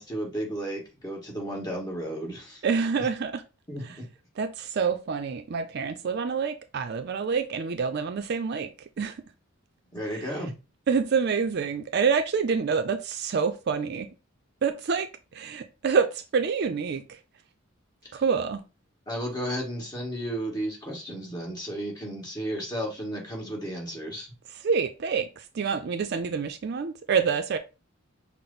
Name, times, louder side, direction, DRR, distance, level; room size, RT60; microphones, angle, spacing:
voice 1, 0.0-2.6 3.7-4.0 9.9-10.5 18.0-18.2 19.1-24.3, right 1 dB, 20° left, 1.5 m, -33 dB
voice 2, 2.6-3.4 3.8-4.0 4.4-9.2 10.1-10.2 10.9-14.1 14.6-17.2 18.1-18.6 24.5-27.6, right 5 dB, 55° right, 0.4 m, -27 dB
5.9 x 2.0 x 3.9 m
head